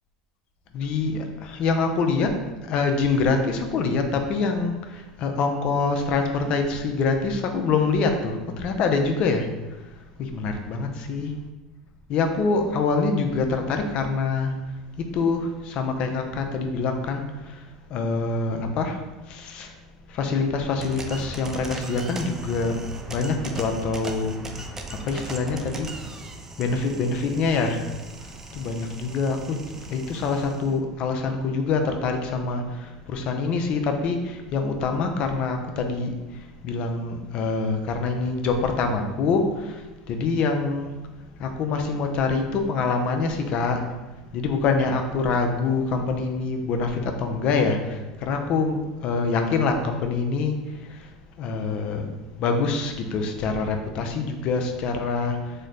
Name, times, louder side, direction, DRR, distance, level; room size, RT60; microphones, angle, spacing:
voice 1, 0.7-9.5 10.2-11.3 12.1-14.5 15.0-17.6 17.9-19.0 19.3-19.8 20.1-22.8 23.1-24.4 25.0-25.9 26.6-27.8 28.5-36.2 36.6-40.9 41.4-43.8 44.3-51.1 51.4-52.1 52.4-55.5, left 4 dB, 50° left, 5 dB, 0.5 m, -25 dB
sound 1, 20.8-30.7, right 3 dB, 20° right, 0.4 m, -38 dB
3.1 x 2.1 x 3.8 m, 1.1 s
hypercardioid pair, 90°, 2 cm